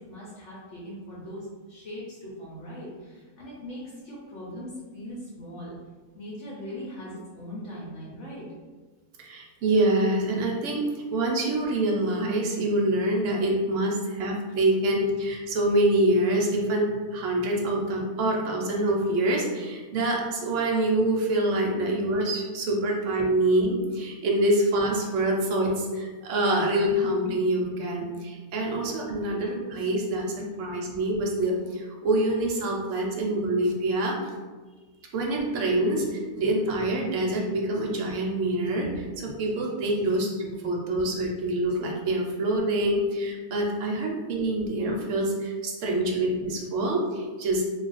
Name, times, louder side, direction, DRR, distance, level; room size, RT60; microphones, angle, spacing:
voice 1, 0.1-5.8 6.1-8.5 34.7-35.1, equal, 60° left, -7 dB, 0.9 m, -40 dB
voice 2, 9.2-10.8 11.1-34.2 35.1-38.9 39.2-47.6, right 1 dB, 65° right, -1 dB, 0.9 m, -26 dB
2.4 x 2.3 x 3.9 m, 1.4 s
omnidirectional pair, 1.6 m